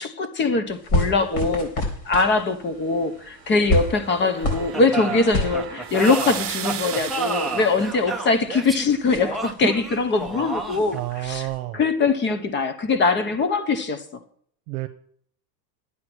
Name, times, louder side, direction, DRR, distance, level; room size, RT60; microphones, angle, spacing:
voice 1, 0.0-1.7 2.0-11.5 11.7-14.0, left 3 dB, 25° left, 1.1 m, -22 dB
sound 1, 0.7-11.6, left 1 dB, 40° left, 4.2 m, -31 dB
sound 2, 3.4-8.0, right 11 dB, 30° right, 1.6 m, -36 dB
sound 3, 4.7-11.0, right 3 dB, ahead, 0.6 m, -30 dB
voice 2, 10.9-11.8 14.7-14.9, right 17 dB, 65° right, 1.1 m, -29 dB
11.5 x 8.6 x 6.2 m
supercardioid pair, 155°, 48 cm